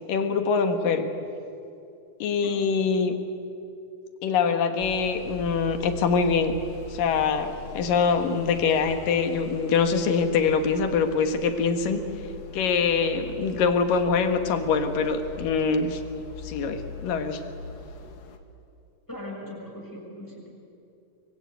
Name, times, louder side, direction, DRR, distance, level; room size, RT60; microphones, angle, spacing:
voice 1, 0.1-1.1 2.2-3.2 4.2-6.5 6.9-12.0 12.5-16.0 16.4-17.4, left 5 dB, 80° left, 7 dB, 3.3 m, -24 dB
sound 1, 4.8-18.4, left 4 dB, 55° left, 2.6 m, -41 dB
voice 2, 19.1-20.5, left 1 dB, 5° left, -2 dB, 6.2 m, -39 dB
24.0 x 24.0 x 9.1 m, 2.7 s
omnidirectional pair, 3.9 m